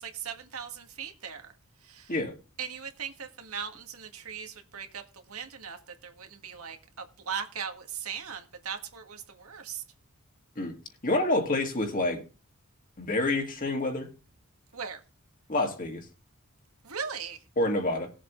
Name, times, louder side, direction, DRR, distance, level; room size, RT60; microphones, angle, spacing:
voice 1, 0.0-1.5 1.8-2.1 2.6-9.8 14.7-15.0 16.8-17.4, right 7 dB, 90° right, 1.7 m, -39 dB
voice 2, 11.0-12.2 13.0-14.1 15.5-16.1 17.6-18.1, left 2 dB, 40° left, 2.0 m, -27 dB
19.5 x 7.4 x 3.1 m
head